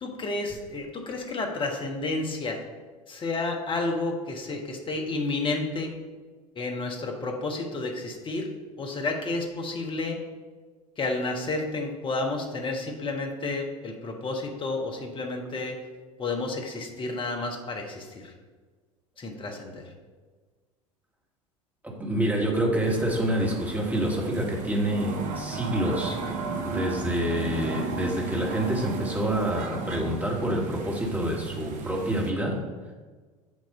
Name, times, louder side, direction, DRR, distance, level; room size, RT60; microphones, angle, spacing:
voice 1, 0.0-2.6 3.1-5.9 6.5-8.5 8.8-10.2 11.0-15.8 16.2-18.3 19.2-19.9, left 3 dB, 30° left, 2 dB, 1.3 m, -31 dB
voice 2, 21.8-26.2 26.6-32.6, equal, 10° right, -2 dB, 1.8 m, -27 dB
sound 1, 22.8-32.3, right 4 dB, 45° right, 0.9 m, -34 dB
8.4 x 3.0 x 5.4 m, 1.4 s
figure-of-eight pair, 70°, 18 cm